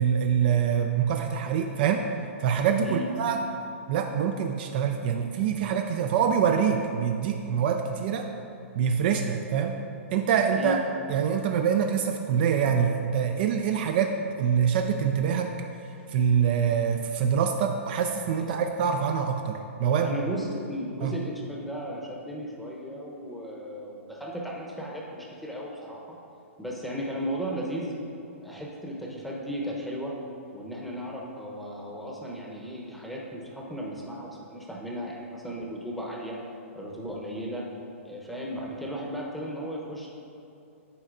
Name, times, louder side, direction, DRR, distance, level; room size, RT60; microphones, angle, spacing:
voice 1, 0.0-2.1 2.4-3.4 3.9-8.3 8.8-9.8 10.1-10.8 11.1-15.5 16.1-20.2 21.0-21.2, right 7 dB, 45° right, 5 dB, 0.3 m, -25 dB
voice 2, 20.0-26.2 26.6-27.9 28.4-30.1 30.5-36.4 36.7-37.6 38.0-40.1, equal, ahead, -3 dB, 0.8 m, -35 dB
9.7 x 4.2 x 2.5 m, 2.7 s
hypercardioid pair, 140°, 7 cm